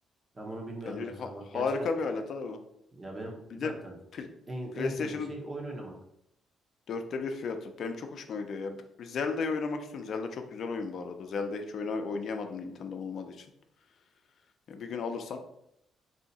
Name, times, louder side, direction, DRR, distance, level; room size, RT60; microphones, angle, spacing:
voice 1, 0.3-1.9 2.9-3.9 4.5-5.9, right 1 dB, 30° right, 0 dB, 1.1 m, -39 dB
voice 2, 0.9-2.6 3.5-3.7 4.1-4.3 4.8-5.3 6.9-13.4 14.7-15.4, left 4 dB, 60° left, 6 dB, 0.5 m, -34 dB
3.4 x 2.8 x 4.0 m, 0.79 s
cardioid pair, 90°, 0 cm